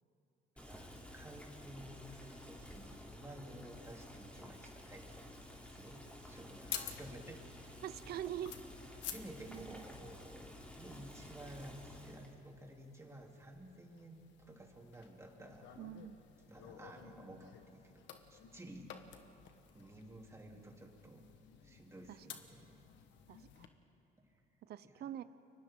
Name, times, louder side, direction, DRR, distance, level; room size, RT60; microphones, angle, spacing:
Boiling, 0.6-12.3, left 1 dB, 5° left, 3.5 m, -53 dB
voice 1, 0.7-7.8 9.0-15.6 16.5-18.0 18.3-18.9 19.7-21.2 21.6-22.8 24.2-24.3, right 1 dB, 15° right, 0 dB, 3.5 m, -53 dB
sound 1, 6.3-23.7, left 9 dB, 75° left, 1.5 m, -53 dB
voice 2, 7.8-8.6 9.5-9.8 15.8-16.2 22.1-22.3 23.3-23.7 24.7-25.2, right 11 dB, 60° right, 14 dB, 0.8 m, -44 dB
30.0 x 24.0 x 3.9 m, 2.8 s
supercardioid pair, 85°, 19 cm